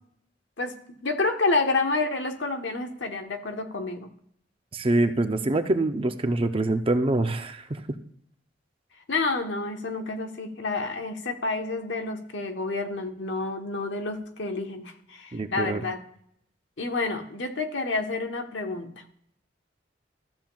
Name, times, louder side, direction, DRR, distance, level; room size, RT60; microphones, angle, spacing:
voice 1, 0.6-4.1 9.1-16.0 16.8-19.0, left 3 dB, 85° left, 5 dB, 1.1 m, -29 dB
voice 2, 4.7-7.8 15.3-15.8, right 2 dB, 30° right, 8 dB, 0.6 m, -25 dB
13.5 x 7.4 x 2.3 m, 0.68 s
head